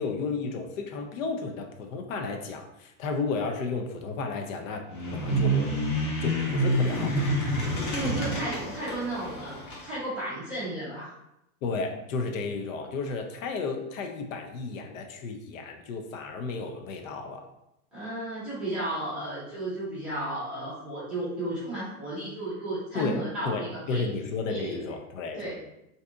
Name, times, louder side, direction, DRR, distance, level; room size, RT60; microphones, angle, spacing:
voice 1, 0.0-4.9 5.1-5.7 6.2-7.4 11.6-17.5 22.9-25.5, left 4 dB, 65° left, 4 dB, 0.6 m, -33 dB
sound 1, 4.9-9.9, right 1 dB, 40° left, 0.8 m, -28 dB
voice 2, 7.9-11.1 17.9-24.1 24.5-24.8 25.3-25.5, right 1 dB, ahead, -14 dB, 0.5 m, -34 dB
2.7 x 2.4 x 3.5 m, 0.86 s
supercardioid pair, 170°, 42 cm